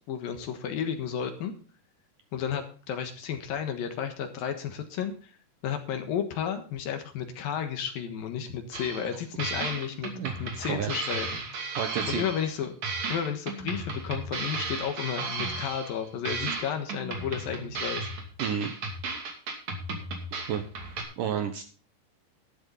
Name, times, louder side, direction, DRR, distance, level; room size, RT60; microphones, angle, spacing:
voice 1, 0.1-1.5 2.3-5.3 5.6-10.1 10.4-12.7 13.1-18.1, left 8 dB, 65° left, 6 dB, 2.9 m, -32 dB
sound 1, 8.7-9.1 9.4-12.6 12.8-16.0 16.2-21.0, right 3 dB, 45° right, 3.4 m, -35 dB
voice 2, 11.8-12.2 18.4-18.7 20.4-20.6 21.2-21.6, right 8 dB, 70° right, 8 dB, 2.2 m, -30 dB
13.0 x 11.5 x 3.9 m, 0.38 s
omnidirectional pair, 4.8 m